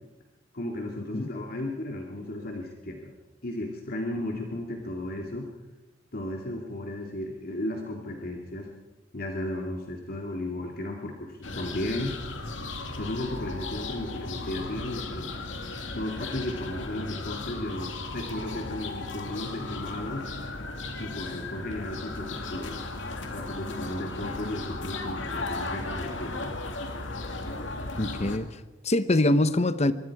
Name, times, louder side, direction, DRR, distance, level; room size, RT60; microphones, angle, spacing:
voice 1, 0.5-3.1 3.4-5.5 6.1-8.7 9.1-12.2 13.0-15.3 15.9-20.3 21.0-22.8 23.2-26.6, left 1 dB, 55° left, 2.4 m, -34 dB
sound 1, 11.4-28.4, left 2 dB, 85° left, 2.4 m, -36 dB
voice 2, 28.0-29.9, left 1 dB, 35° left, 1.0 m, -24 dB
25.0 x 23.5 x 4.8 m
head